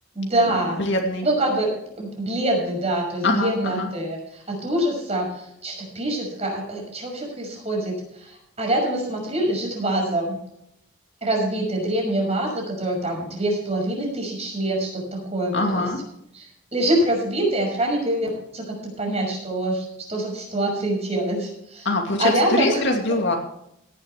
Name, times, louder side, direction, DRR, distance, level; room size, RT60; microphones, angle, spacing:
voice 1, 0.2-0.8 1.2-1.7 2.0-10.4 11.2-15.9 16.3-18.6 19.0-21.9 22.2-22.8 23.1-23.2, right 1 dB, 30° right, 0 dB, 5.9 m, -25 dB
voice 2, 0.8-1.3 3.2-3.9 15.5-16.0 21.8-23.4, left 2 dB, 55° left, 1 dB, 2.6 m, -23 dB
17.5 x 11.0 x 3.4 m, 0.75 s
head